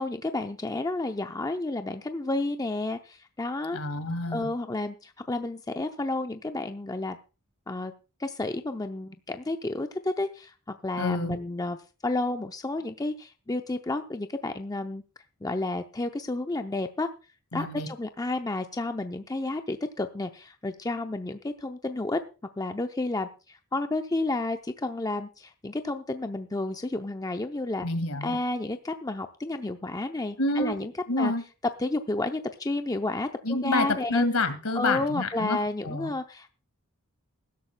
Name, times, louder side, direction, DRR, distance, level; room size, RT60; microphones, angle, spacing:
voice 1, 0.0-3.8 4.3-7.2 7.7-7.9 8.2-11.8 12.0-15.0 15.4-17.1 17.5-22.2 22.6-27.9 28.2-30.9 31.2-31.3 31.8-34.2 34.7-36.5, left 2 dB, 15° left, 7 dB, 0.6 m, -31 dB
voice 2, 3.7-4.5 11.0-11.4 17.5-17.9 27.8-28.4 30.4-30.8 31.1-31.4 33.4-35.6 35.9-36.1, left 2 dB, 75° left, 9 dB, 2.1 m, -28 dB
20.5 x 11.5 x 2.2 m, 0.33 s
head